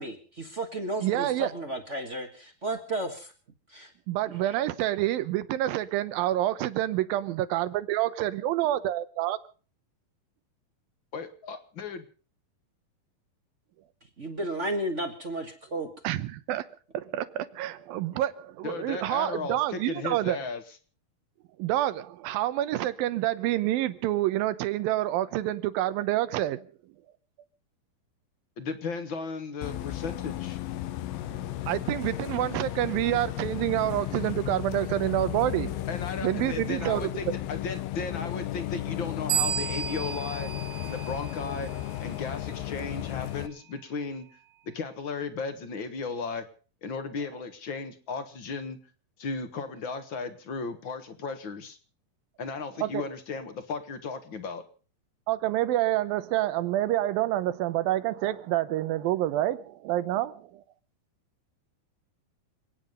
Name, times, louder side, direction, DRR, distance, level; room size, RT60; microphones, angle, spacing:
voice 1, 0.0-3.3 3.7-3.9 14.2-15.9, right 1 dB, 50° right, 0.8 m, -33 dB
voice 2, 1.0-1.5 4.1-9.4 16.0-16.7 16.9-20.4 21.6-26.6 31.2-35.9 36.2-37.1 52.8-53.0 55.3-60.5, right 14 dB, 80° right, 2.7 m, -28 dB
voice 3, 11.1-12.0 18.6-20.6 28.6-30.6 35.9-40.5 40.8-41.7 42.0-44.3 44.7-46.5 46.8-48.8 49.2-51.8 52.4-54.6, left 4 dB, 50° left, 1.5 m, -35 dB
Bus, 29.6-43.5, left 14 dB, 85° left, 2.7 m, -34 dB
sound 1, 39.3-41.8, right 10 dB, 65° right, 2.8 m, -32 dB
28.0 x 9.4 x 5.3 m
omnidirectional pair, 4.1 m